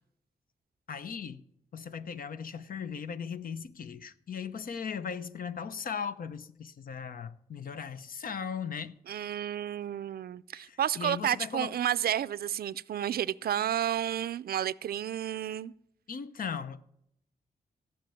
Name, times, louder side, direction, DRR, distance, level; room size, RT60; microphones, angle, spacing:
voice 1, 0.9-1.4 1.7-8.9 10.5-11.8 15.2-15.3 16.1-16.8, left 6 dB, 65° left, 0.8 m, -38 dB
voice 2, 9.1-15.7, right 10 dB, 85° right, 0.4 m, -31 dB
15.0 x 5.8 x 9.2 m
wide cardioid pair, 155°, 15 cm